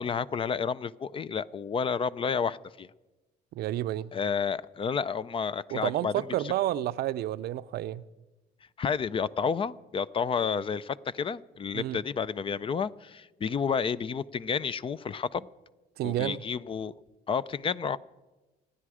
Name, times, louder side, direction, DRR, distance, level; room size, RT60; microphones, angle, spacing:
voice 1, 0.0-2.9 4.1-6.2 8.8-15.5 16.0-16.9 17.3-18.0, left 6 dB, 30° left, 0.5 m, -30 dB
voice 2, 3.5-4.1 5.7-8.0 11.7-12.0 16.0-16.4, right 13 dB, 70° right, 0.6 m, -30 dB
28.5 x 10.0 x 4.9 m
cardioid pair, 110°, 17 cm